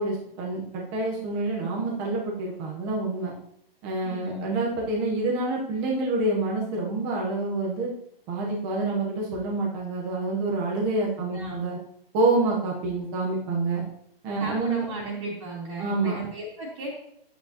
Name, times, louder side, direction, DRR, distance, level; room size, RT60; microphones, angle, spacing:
voice 1, 0.0-3.3 3.8-7.9 8.3-11.8 12.1-13.8 14.2-14.9 15.8-16.2, right 3 dB, 10° right, -2 dB, 0.7 m, -27 dB
voice 2, 4.0-4.6 11.1-11.6 14.4-16.9, right 1 dB, 30° right, -5 dB, 2.0 m, -35 dB
10.0 x 8.4 x 2.8 m, 0.71 s
hypercardioid pair, 170°, 30 cm